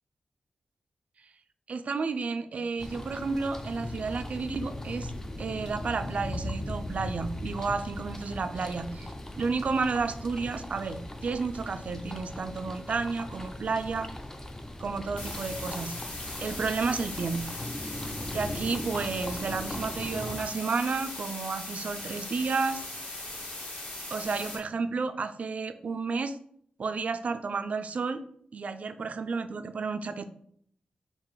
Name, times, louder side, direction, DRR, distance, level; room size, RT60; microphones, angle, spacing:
voice 1, 1.7-5.1 5.4-14.1 14.8-15.9 16.4-17.5 17.8-18.0 18.3-22.8 24.1-26.4 26.8-28.2 28.5-30.3, right 4 dB, 55° right, 10 dB, 0.3 m, -31 dB
sound 1, 2.8-20.4, left 1 dB, 20° left, 0.4 m, -39 dB
sound 2, 15.2-24.6, left 2 dB, 70° left, 1.6 m, -39 dB
3.9 x 2.5 x 4.6 m, 0.63 s
wide cardioid pair, 105°, 3 cm